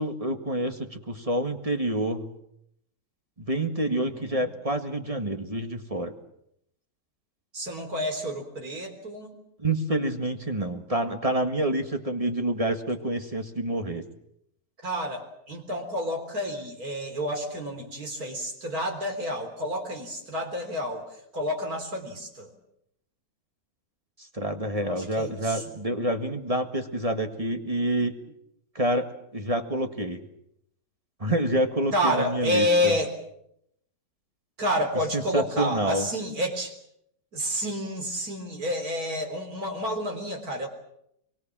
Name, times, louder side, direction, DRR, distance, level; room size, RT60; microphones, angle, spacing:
voice 1, 0.0-2.3 3.4-6.1 9.6-14.0 24.2-28.1 28.7-29.1 29.3-30.2 31.2-32.9 35.1-36.1, right 1 dB, 20° right, 6 dB, 1.7 m, -27 dB
voice 2, 3.9-4.5 7.5-9.3 14.8-22.5 24.7-25.6 31.9-33.2 34.6-36.7 37.3-40.7, equal, 60° right, 4 dB, 4.2 m, -29 dB
26.0 x 23.5 x 7.5 m, 0.77 s
omnidirectional pair, 1.8 m